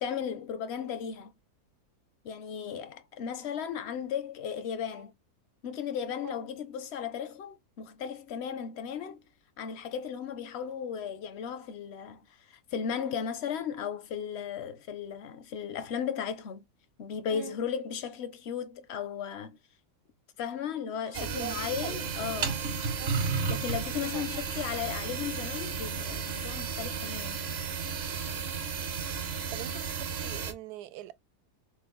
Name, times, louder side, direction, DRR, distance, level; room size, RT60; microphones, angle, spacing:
voice 1, 0.0-1.3 2.2-5.1 5.6-9.2 9.6-16.6 17.0-19.6 20.4-22.6 23.5-27.4, left 8 dB, 65° left, 0.6 m, -36 dB
sound 1, 21.1-30.5, right 5 dB, 50° right, 0.9 m, -33 dB
voice 2, 21.2-21.6 21.8-22.1 23.0-23.2 24.1-24.2 29.5-31.1, right 13 dB, 80° right, 1.1 m, -42 dB
5.3 x 2.1 x 3.8 m
omnidirectional pair, 1.7 m